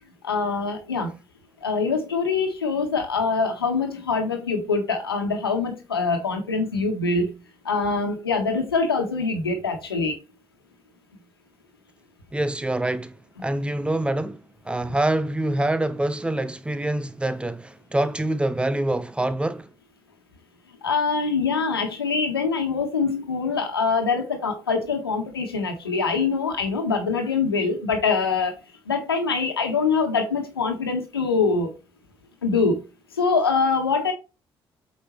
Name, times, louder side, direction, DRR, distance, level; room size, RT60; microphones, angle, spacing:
voice 1, 0.2-1.1 1.6-7.4 7.6-10.1 20.8-28.6 28.8-31.7 32.4-32.8 33.1-34.1, left 4 dB, 85° left, 1.5 m, -24 dB
voice 2, 12.3-13.1 13.4-19.7, right 1 dB, 10° right, 1.0 m, -25 dB
8.5 x 5.4 x 3.1 m
figure-of-eight pair, 50°, 12 cm